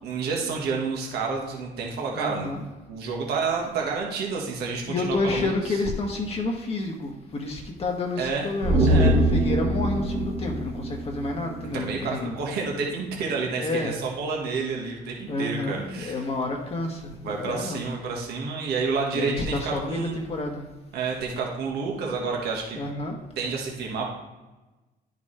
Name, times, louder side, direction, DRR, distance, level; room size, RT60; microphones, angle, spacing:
voice 1, 0.0-2.5 2.9-5.8 8.2-8.5 8.9-9.1 11.7-16.2 17.1-20.2 20.9-22.8 23.4-24.1, right 4 dB, 75° right, -1 dB, 1.5 m, -29 dB
voice 2, 2.1-2.6 4.9-12.4 13.5-13.9 15.3-17.9 19.1-20.7 22.8-23.2, left 2 dB, 35° left, 1 dB, 1.3 m, -29 dB
sound 1, 8.6-12.0 12.3-12.4, right 1 dB, 40° right, 1.4 m, -23 dB
10.5 x 5.1 x 3.3 m, 1.1 s
cardioid pair, 110°, 17 cm